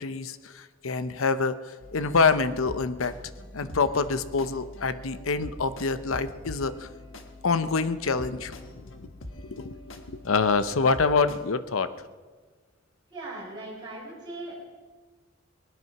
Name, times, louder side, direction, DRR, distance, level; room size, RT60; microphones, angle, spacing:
voice 1, 0.0-1.6 1.9-3.1 3.5-6.9 7.4-9.1 9.4-9.8 10.2-11.9, left 4 dB, 90° left, 12 dB, 0.8 m, -26 dB
sound 1, 1.8-11.4, left 1 dB, 70° left, 1.5 m, -44 dB
voice 2, 13.1-14.5, right 2 dB, 20° right, -6 dB, 4.9 m, -39 dB
19.5 x 11.0 x 5.9 m, 1.4 s
head